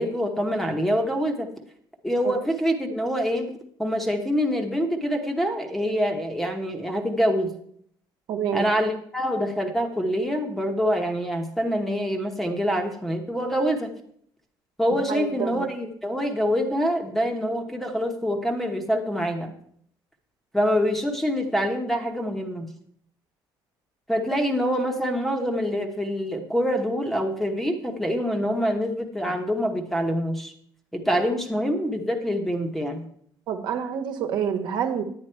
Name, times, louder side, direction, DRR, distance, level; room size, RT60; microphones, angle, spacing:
voice 1, 0.0-1.5 2.0-3.5 3.8-7.5 8.5-13.9 14.8-19.5 20.5-22.7 24.1-30.5 30.9-33.0, equal, ahead, 4 dB, 1.0 m, -25 dB
voice 2, 8.3-8.7 15.1-15.6 33.5-35.0, right 8 dB, 65° right, 5 dB, 1.2 m, -27 dB
10.0 x 9.1 x 4.5 m, 0.65 s
cardioid pair, 170°, 8 cm